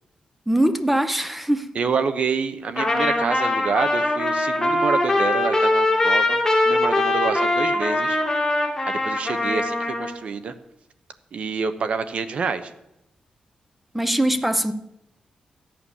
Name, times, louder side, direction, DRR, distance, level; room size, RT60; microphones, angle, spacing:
voice 1, 0.5-1.7 13.9-14.7, right 1 dB, 5° right, 0.8 m, -21 dB
voice 2, 1.7-6.4 6.6-8.2 8.8-10.5 11.3-12.7, right 5 dB, 55° right, 1.0 m, -27 dB
Trumpet, 2.8-10.1, left 2 dB, 15° left, 2.7 m, -22 dB
14.0 x 8.8 x 7.2 m
wide cardioid pair, 140°, 2 cm